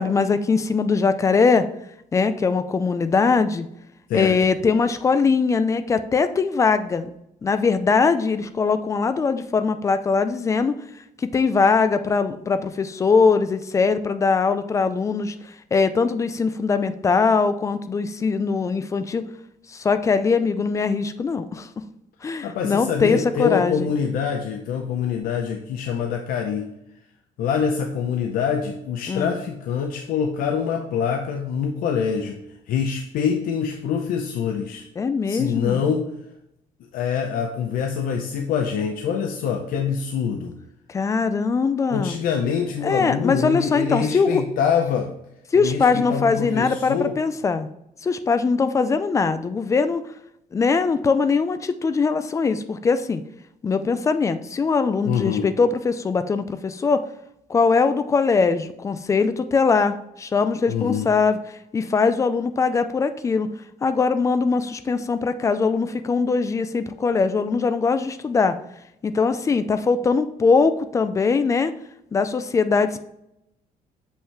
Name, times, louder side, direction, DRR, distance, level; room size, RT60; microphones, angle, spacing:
voice 1, 0.0-1.7 2.1-3.7 4.1-7.1 7.4-10.8 11.3-15.3 15.7-19.2 19.7-21.7 22.2-23.9 29.1-29.4 35.0-35.8 40.9-42.2 42.8-44.4 45.5-47.7 48.0-50.0 50.5-53.2 53.6-57.0 57.5-61.4 61.7-63.5 63.8-68.6 69.0-71.7 72.1-73.0, left 4 dB, 20° left, 11 dB, 0.4 m, -21 dB
voice 2, 22.4-26.7 27.4-32.4 32.7-34.8 35.3-36.1 36.9-40.5 41.9-45.1 45.6-47.2 55.0-55.5 60.7-61.1, left 7 dB, 75° left, 4 dB, 0.7 m, -25 dB
7.3 x 5.6 x 3.3 m, 0.82 s
cardioid pair, 165°, 15 cm